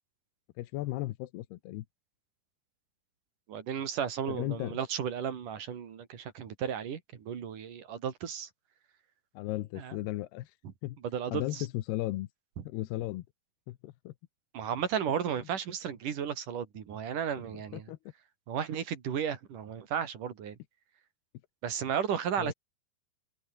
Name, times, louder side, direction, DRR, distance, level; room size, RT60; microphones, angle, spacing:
voice 1, 0.6-1.9 4.3-4.8 9.3-10.6 10.8-11.0 11.3-12.3 12.6-13.3 13.7-14.1 17.7-18.0 22.4-22.5, left 16 dB, 75° left, 2.9 m, -35 dB
voice 2, 3.5-8.5 9.8-10.0 11.0-11.7 12.6-12.7 14.5-17.9 18.5-20.6 21.6-22.5, right 8 dB, 55° right, 3.8 m, -34 dB
omnidirectional pair, 4.9 m